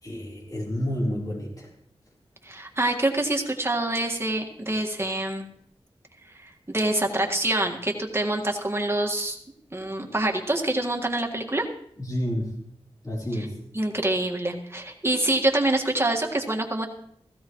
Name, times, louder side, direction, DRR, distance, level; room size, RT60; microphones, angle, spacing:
voice 1, 0.0-1.7 12.0-12.5 13.0-13.6, equal, 35° left, -3 dB, 3.7 m, -29 dB
voice 2, 2.4-5.5 6.3-9.4 9.7-11.7 13.8-16.9, right 1 dB, 25° right, 2 dB, 1.8 m, -26 dB
16.0 x 15.5 x 3.1 m, 0.69 s
wide cardioid pair, 85°, 11 cm